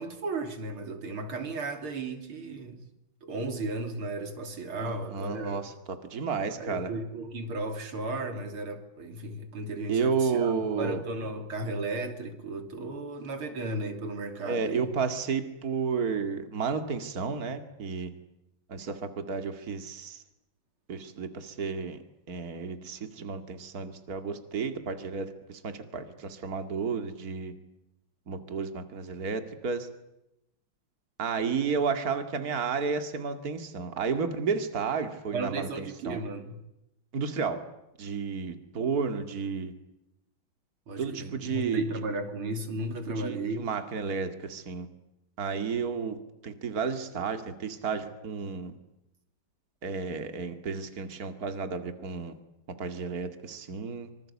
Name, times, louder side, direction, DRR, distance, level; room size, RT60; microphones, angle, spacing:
voice 1, 0.0-2.8 3.2-5.7 6.6-14.9 35.3-36.6 40.9-43.7, right 2 dB, 90° right, 6 dB, 3.8 m, -35 dB
voice 2, 4.8-5.7 6.1-6.9 9.9-11.0 14.4-18.1 18.7-20.2 20.9-22.0 22.3-27.5 28.3-29.9 31.2-36.2 37.1-37.6 38.0-39.7 41.0-41.9 43.2-44.9 45.4-46.2 46.4-48.7 49.8-52.4 52.8-54.1, right 5 dB, 45° right, 7 dB, 2.6 m, -32 dB
26.0 x 25.5 x 8.5 m, 0.87 s
omnidirectional pair, 2.3 m